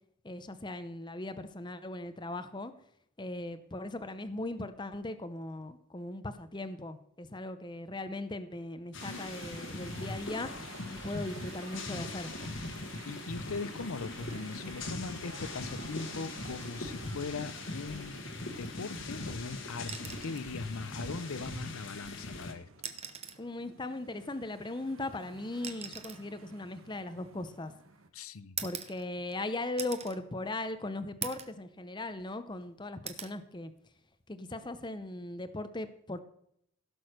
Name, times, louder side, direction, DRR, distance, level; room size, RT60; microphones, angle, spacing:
voice 1, 0.2-2.7 3.2-10.5 10.9-12.3 23.4-27.7 28.6-33.7 34.3-36.2, left 2 dB, 20° left, 0.7 m, -38 dB
sound 1, 8.9-22.5, left 2 dB, 60° left, 1.5 m, -41 dB
sound 2, 9.0-28.1, right 4 dB, 70° right, 1.0 m, -52 dB
voice 2, 13.1-18.2 18.6-22.7 28.1-28.6, left 4 dB, 80° left, 0.6 m, -40 dB
sound 3, 19.9-20.5 21.9-22.1 22.7-23.5 24.7-27.7 28.6-29.4 29.8-30.2 30.6-30.7 31.2-31.6 32.0-32.6 33.1-33.4 34.8-35.1, right 8 dB, 30° right, 0.9 m, -43 dB
16.0 x 6.3 x 6.4 m
head